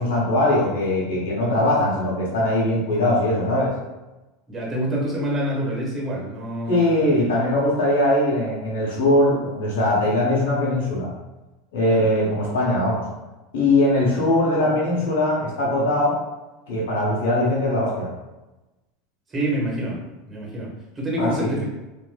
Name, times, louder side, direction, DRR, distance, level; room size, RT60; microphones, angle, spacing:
voice 1, 0.0-3.7 6.7-11.1 11.7-13.0 13.5-16.2 16.7-18.1 21.2-21.6, left 1 dB, 70° left, -5 dB, 0.8 m, -21 dB
voice 2, 4.5-7.0 11.8-12.1 19.3-21.6, right 1 dB, 25° right, -4 dB, 1.3 m, -27 dB
3.0 x 2.6 x 2.2 m, 1.1 s
hypercardioid pair, 90°, 0 cm